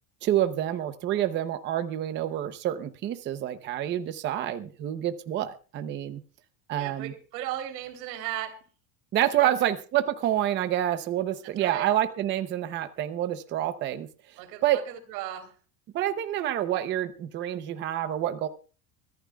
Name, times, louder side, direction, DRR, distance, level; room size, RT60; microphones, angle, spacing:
voice 1, 0.2-6.2 6.7-7.1 9.1-14.1 14.6-14.8 15.9-18.5, right 12 dB, 25° right, 9 dB, 0.7 m, -28 dB
voice 2, 6.7-8.6 9.4-9.7 11.6-11.9 14.4-15.5, right 12 dB, 90° right, 7 dB, 3.6 m, -36 dB
23.5 x 15.0 x 2.3 m, 0.37 s
cardioid pair, 175°, 49 cm